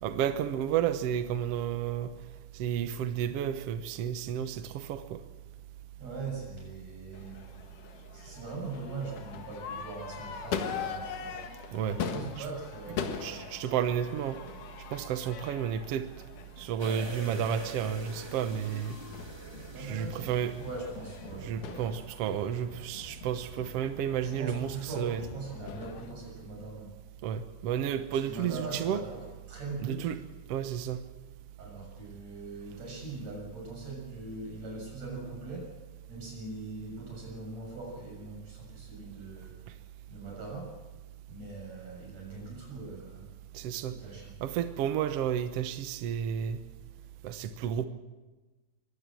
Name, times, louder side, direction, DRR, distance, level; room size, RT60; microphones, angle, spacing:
voice 1, 0.0-2.1 2.5-5.2 11.7-12.0 13.2-14.4 14.9-16.0 16.6-19.0 19.8-20.5 21.4-25.2 27.2-29.0 29.8-30.2 30.5-31.0 43.5-43.9 44.4-46.6 47.2-47.9, right 9 dB, 70° right, 10 dB, 1.5 m, -31 dB
voice 2, 6.0-7.4 8.1-11.5 11.9-13.4 19.7-20.3 20.6-22.0 24.2-27.0 28.2-30.1 31.6-35.7 36.1-39.6 40.1-40.8 41.3-43.3 43.8-44.3, right 3 dB, 50° right, 0 dB, 8.1 m, -41 dB
Crowd / Fireworks, 7.1-26.1, left 7 dB, 70° left, 3.0 m, -42 dB
sound 1, 16.8-21.6 22.0-22.1, right 1 dB, 25° right, 0.6 m, -44 dB
23.0 x 16.5 x 7.6 m, 1.2 s
omnidirectional pair, 4.0 m